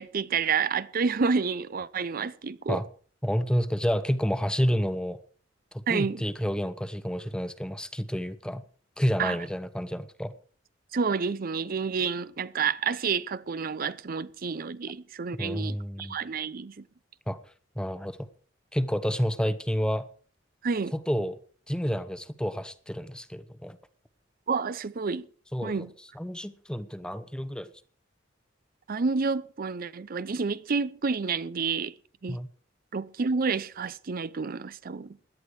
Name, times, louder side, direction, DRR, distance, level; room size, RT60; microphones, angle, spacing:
voice 1, 0.0-2.8 5.9-6.2 9.2-9.4 10.9-16.8 20.6-20.9 24.5-25.3 25.6-25.9 28.9-31.9 32.2-32.4 32.9-35.2, right 5 dB, 50° right, 0.5 m, -29 dB
voice 2, 3.2-5.2 5.7-8.6 9.0-10.3 15.4-16.2 17.3-17.4 17.8-18.3 18.7-20.1 20.9-21.4 21.7-23.8 25.5-25.9 26.1-27.7 32.3-32.5, equal, 5° left, 0.8 m, -29 dB
17.0 x 11.5 x 4.8 m
head